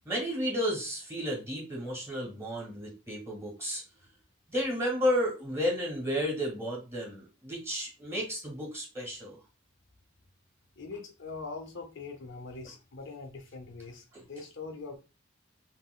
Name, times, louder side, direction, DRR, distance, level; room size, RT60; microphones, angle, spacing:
voice 1, 0.0-3.8 4.5-9.4, equal, 15° right, 1.5 m, -32 dB
voice 2, 10.8-15.0, left 4 dB, 60° left, 0.6 m, -42 dB
3.6 x 2.9 x 2.2 m
head